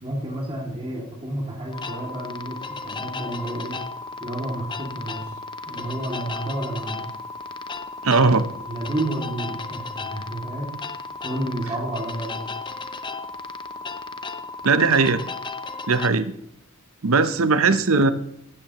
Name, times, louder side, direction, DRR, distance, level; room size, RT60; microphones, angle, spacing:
voice 1, 0.0-3.8 4.2-5.4 5.7-7.1 8.6-10.9 11.2-12.5, right 1 dB, 25° right, -4 dB, 2.5 m, -31 dB
sound 1, 1.7-16.1, left 3 dB, 20° left, 0.7 m, -35 dB
voice 2, 8.0-8.5 14.6-15.2 15.9-16.3 17.0-18.1, right 4 dB, 75° right, 12 dB, 0.8 m, -18 dB
16.0 x 13.5 x 3.1 m, 0.76 s
head